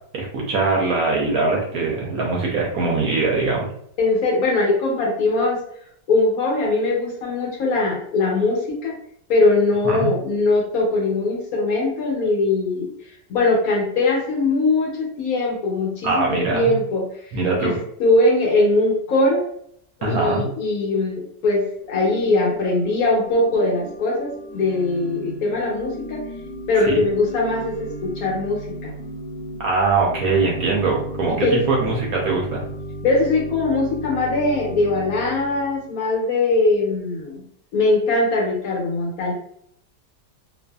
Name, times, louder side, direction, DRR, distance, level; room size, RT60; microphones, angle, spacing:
voice 1, 0.1-3.7 9.8-10.1 16.0-16.7 17.3-17.8 20.0-20.5 26.9-27.0 29.6-32.6, right 3 dB, 70° right, -2 dB, 0.9 m, -22 dB
voice 2, 4.0-5.6 6.1-8.9 9.3-12.9 13.3-17.0 17.6-19.4 20.0-26.2 26.7-28.9 31.3-31.6 33.0-37.4 37.7-39.3, left 2 dB, 65° left, -2 dB, 1.1 m, -21 dB
Organ / Church bell, 21.7-35.9, equal, 85° left, 1.3 m, -35 dB
2.6 x 2.5 x 2.2 m, 0.67 s
omnidirectional pair, 1.8 m